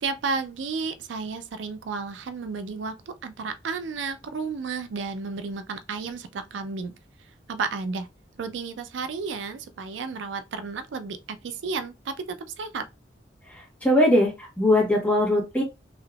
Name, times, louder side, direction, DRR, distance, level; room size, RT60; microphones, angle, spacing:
voice 1, 0.0-6.9 7.5-8.1 8.4-12.8, right 4 dB, 90° right, 0.4 m, -32 dB
voice 2, 13.5-15.6, left 1 dB, 10° left, 1.2 m, -21 dB
3.3 x 2.8 x 2.3 m
head